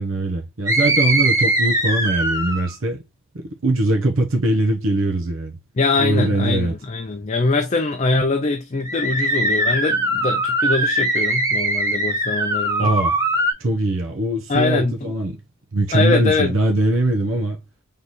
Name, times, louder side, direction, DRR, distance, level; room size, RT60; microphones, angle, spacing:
voice 1, 0.0-3.0 3.3-5.6 6.0-6.7 12.8-13.2 13.6-15.4 15.7-17.6, right 2 dB, 70° right, 0.9 m, -21 dB
sound 1, 0.7-2.7 8.8-13.5, right 1 dB, 15° right, 1.7 m, -21 dB
voice 2, 5.8-12.9 14.5-15.1 15.9-16.6, left 3 dB, 35° left, 0.5 m, -22 dB
4.1 x 3.3 x 2.9 m
head